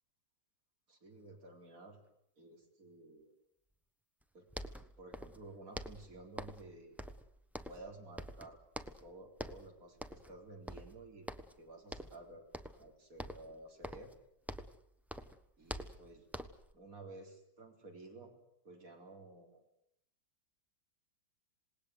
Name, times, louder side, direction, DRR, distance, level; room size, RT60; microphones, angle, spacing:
voice 1, 0.9-2.0 2.4-3.3 4.3-4.5 5.0-7.0 7.7-8.6 9.0-11.3 11.6-12.4 12.7-14.1 15.6-16.3 16.7-18.3 18.6-19.6, right 2 dB, 50° right, 2 dB, 4.6 m, -53 dB
sound 1, 4.2-4.3 4.5-5.5 5.7-6.7 7.0-7.9 8.2-9.1 9.4-9.7 10.0-10.4 10.7-11.6 11.9-12.2 12.5-12.9 13.2-14.8 15.1-16.7, equal, ahead, 0.9 m, -46 dB
27.5 x 19.0 x 8.3 m, 0.78 s
omnidirectional pair, 1.9 m